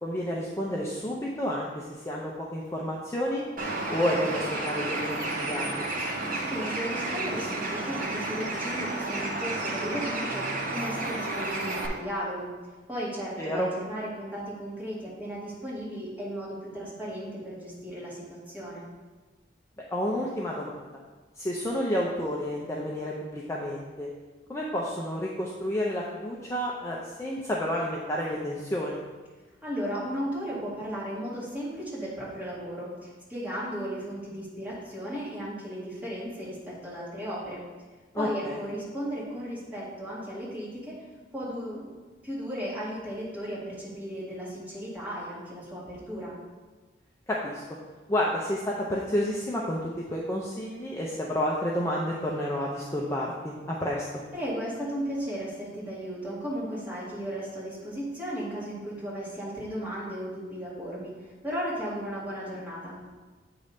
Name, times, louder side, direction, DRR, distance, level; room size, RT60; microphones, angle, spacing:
voice 1, 0.0-3.4 3.9-5.7 13.4-13.7 19.9-20.9 21.4-24.1 24.5-29.0 38.1-38.6 47.3-47.6 48.1-54.0, left 1 dB, 15° left, -4 dB, 0.6 m, -30 dB
Bird, 3.6-11.9, right 2 dB, 50° right, 0.9 m, -31 dB
voice 2, 6.4-12.5 12.9-18.8 29.6-37.6 38.2-41.0 41.3-46.3 54.3-63.1, equal, 10° right, -8 dB, 2.0 m, -35 dB
8.7 x 3.2 x 5.1 m, 1.3 s
head